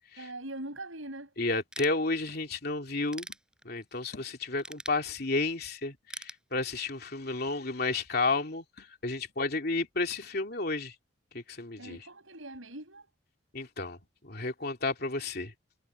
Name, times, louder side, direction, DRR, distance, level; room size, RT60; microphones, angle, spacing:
voice 1, 0.2-1.3 11.8-13.1, right 1 dB, 85° right, 6.8 m, -42 dB
voice 2, 1.4-3.3 3.6-10.9 11.3-12.0 13.5-14.0 14.2-15.5, left 3 dB, 50° left, 2.9 m, -32 dB
Ratchet pawl / Tools, 1.7-2.5 2.9-4.0 4.6-5.6 6.1-7.1, right 1 dB, 5° right, 7.3 m, -44 dB
head